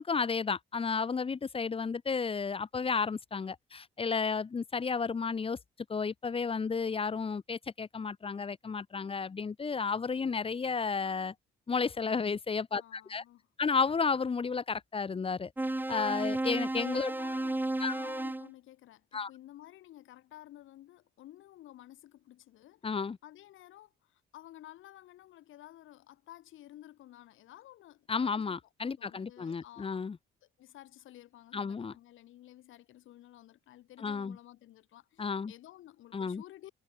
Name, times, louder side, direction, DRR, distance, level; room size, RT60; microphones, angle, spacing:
voice 1, 0.0-5.6 5.9-11.3 11.7-13.2 13.6-15.5 15.9-17.1 17.8-17.9 19.1-19.3 22.8-23.2 28.1-30.2 31.5-31.9 34.0-34.4 35.2-35.5 36.1-36.4, left 5 dB, 30° left, 0.8 m, -32 dB
voice 2, 12.8-13.5 17.0-28.6 28.8-30.0 30.4-36.7, left 14 dB, 85° left, 5.2 m, -53 dB
sound 1, 15.6-18.5, right 2 dB, 10° right, 1.2 m, -33 dB
cardioid pair, 90°, 20 cm